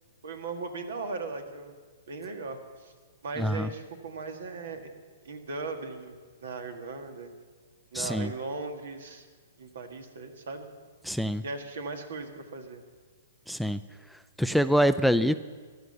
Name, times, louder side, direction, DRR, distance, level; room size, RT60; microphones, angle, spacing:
voice 1, 0.2-1.7 2.1-2.9 3.2-4.9 5.2-7.3 7.9-9.3 9.6-10.7 11.4-12.8, right 3 dB, 75° right, 7 dB, 1.8 m, -38 dB
voice 2, 3.4-3.7 7.9-8.3 11.0-11.4 13.5-13.8 14.1-15.3, equal, ahead, 13 dB, 0.4 m, -25 dB
15.5 x 11.5 x 6.8 m, 1.5 s
hypercardioid pair, 135°, 0 cm